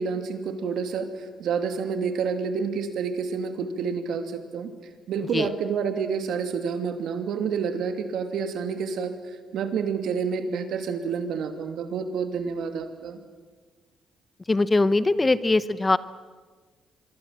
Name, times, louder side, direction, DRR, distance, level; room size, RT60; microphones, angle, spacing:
voice 1, 0.0-4.7 5.1-9.1 9.5-13.2, right 6 dB, 75° right, 8 dB, 2.8 m, -29 dB
voice 2, 14.5-16.0, left 2 dB, 20° left, 16 dB, 0.9 m, -21 dB
25.5 x 23.0 x 7.7 m, 1.4 s
cardioid pair, 90°, 0 cm